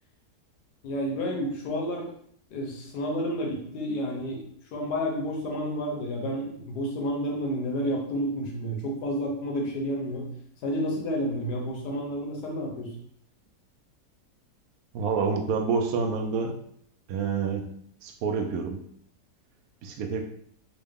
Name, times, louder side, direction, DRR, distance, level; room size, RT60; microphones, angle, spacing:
voice 1, 0.8-2.1 2.5-4.5 4.7-10.3 10.6-12.9, equal, 85° left, 0 dB, 1.4 m, -30 dB
voice 2, 14.9-16.6 17.1-17.7 18.0-18.8 19.8-20.2, right 5 dB, 70° right, 4 dB, 1.0 m, -28 dB
3.7 x 2.3 x 3.5 m, 0.66 s
omnidirectional pair, 1.7 m